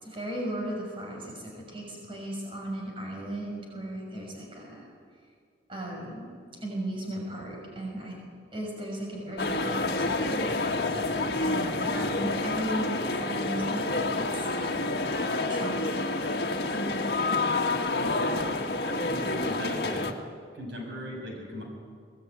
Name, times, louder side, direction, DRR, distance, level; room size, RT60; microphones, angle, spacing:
voice 1, 0.0-4.9 5.7-6.3 6.6-8.1 8.5-15.0 15.5-16.2, right 1 dB, 30° right, -1 dB, 6.3 m, -36 dB
sound 1, 9.4-20.1, left 2 dB, 60° left, 2.0 m, -28 dB
voice 2, 17.9-18.6 18.8-20.0 20.5-21.6, equal, 75° right, 1 dB, 7.0 m, -38 dB
24.0 x 20.0 x 9.7 m, 2.1 s
head